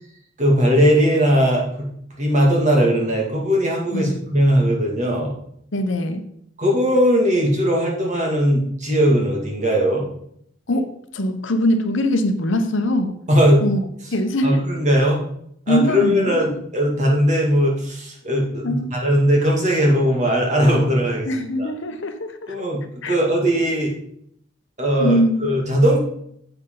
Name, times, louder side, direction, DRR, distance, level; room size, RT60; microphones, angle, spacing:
voice 1, 0.4-5.3 6.6-10.1 13.3-13.6 14.4-15.2 15.7-21.3 21.6-21.7 22.5-23.9 24.8-26.0, equal, 35° right, -1 dB, 2.3 m, -19 dB
voice 2, 5.7-6.2 10.7-10.9 11.1-13.2 13.6-13.8 14.1-14.6 15.7-16.4 18.6-18.9 21.3-22.5 23.0-23.2 25.0-25.5, left 1 dB, 60° left, 7 dB, 0.9 m, -22 dB
9.9 x 8.0 x 3.9 m, 0.70 s
head